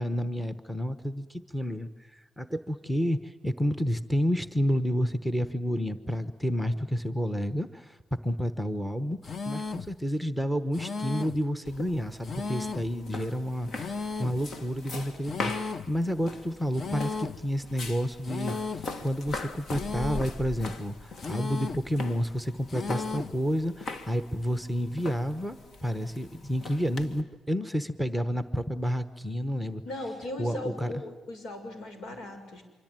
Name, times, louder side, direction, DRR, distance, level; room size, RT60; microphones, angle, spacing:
voice 1, 0.0-8.0 8.2-9.2 9.4-29.8 30.4-30.9, equal, ahead, 10 dB, 1.1 m, -30 dB
sound 1, 9.2-9.9 10.7-11.5 12.2-13.0 13.7-14.4 15.2-15.9 16.7-17.4 18.2-18.9 19.7-20.4 21.2-21.9 22.7-23.4, left 4 dB, 35° left, 0.8 m, -35 dB
sound 2, 11.6-27.2, left 3 dB, 55° left, 1.9 m, -41 dB
voice 2, 29.8-32.6, left 1 dB, 85° left, 6 dB, 6.4 m, -38 dB
26.0 x 25.0 x 9.0 m, 1.2 s
cardioid pair, 160°, 0 cm